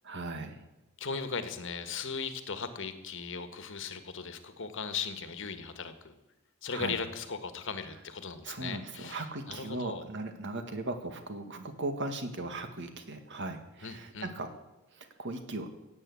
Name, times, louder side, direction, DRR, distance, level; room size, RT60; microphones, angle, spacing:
voice 1, 0.0-0.7 6.7-7.0 8.4-14.5 14.9-15.7, right 2 dB, 55° right, 7 dB, 1.8 m, -38 dB
voice 2, 1.0-6.1 6.6-10.0 13.8-14.3, left 5 dB, 60° left, 10 dB, 1.5 m, -38 dB
17.0 x 8.6 x 8.4 m, 0.99 s
head